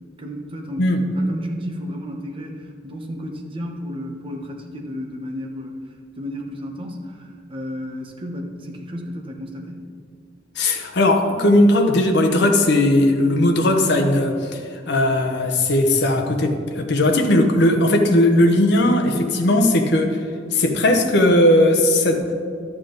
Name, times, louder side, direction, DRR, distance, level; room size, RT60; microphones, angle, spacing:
voice 1, 0.2-5.8 6.2-9.9, equal, 30° right, 1 dB, 1.1 m, -33 dB
voice 2, 10.6-14.6 14.9-20.2 20.5-22.4, left 1 dB, 65° left, 4 dB, 0.9 m, -17 dB
11.5 x 7.5 x 3.9 m, 2.2 s
head